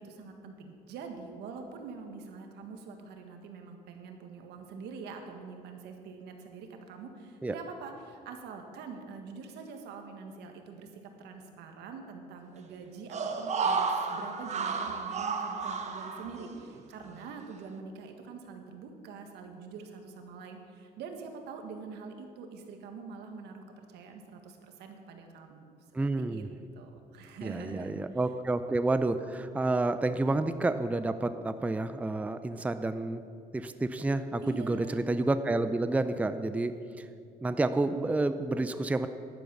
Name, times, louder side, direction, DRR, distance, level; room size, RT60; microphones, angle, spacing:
voice 1, 0.0-26.4 26.7-27.9 34.4-35.0, right 5 dB, 80° right, 4 dB, 1.7 m, -45 dB
sound 1, 13.1-16.8 17.1-17.2, right 5 dB, 40° right, 1.1 m, -32 dB
voice 2, 25.9-26.5 27.4-33.2 33.5-37.1 37.4-39.1, right 2 dB, 10° right, 10 dB, 0.5 m, -29 dB
11.0 x 9.3 x 7.1 m, 2.4 s
cardioid pair, 110°, 17 cm